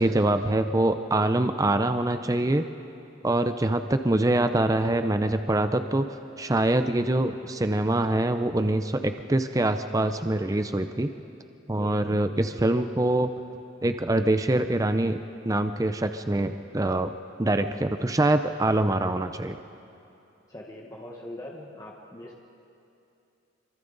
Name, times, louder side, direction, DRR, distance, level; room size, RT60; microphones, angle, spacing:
voice 1, 0.0-2.6 3.2-11.1 11.7-13.3 13.8-15.2 15.4-17.1 17.4-19.6, right 1 dB, 15° right, 8 dB, 0.5 m, -24 dB
voice 2, 11.7-12.2 20.5-22.4, left 1 dB, 20° left, -2 dB, 1.3 m, -42 dB
27.0 x 24.5 x 4.0 m, 2.7 s
head